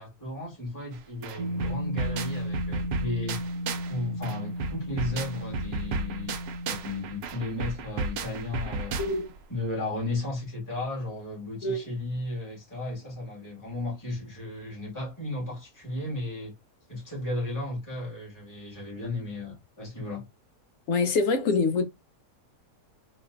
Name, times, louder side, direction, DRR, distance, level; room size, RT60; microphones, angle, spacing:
voice 1, 0.0-3.4 3.9-6.3 6.7-9.0 9.5-16.5 16.9-20.2, left 2 dB, 15° left, 1.7 m, -34 dB
sound 1, 0.9-1.0 1.2-3.9 4.2-9.4, right 3 dB, 65° right, 0.6 m, -34 dB
sound 2, 1.4-6.8, equal, 85° right, 1.2 m, -34 dB
voice 2, 20.9-21.8, left 3 dB, 70° left, 0.9 m, -25 dB
3.7 x 2.5 x 2.4 m
omnidirectional pair, 1.5 m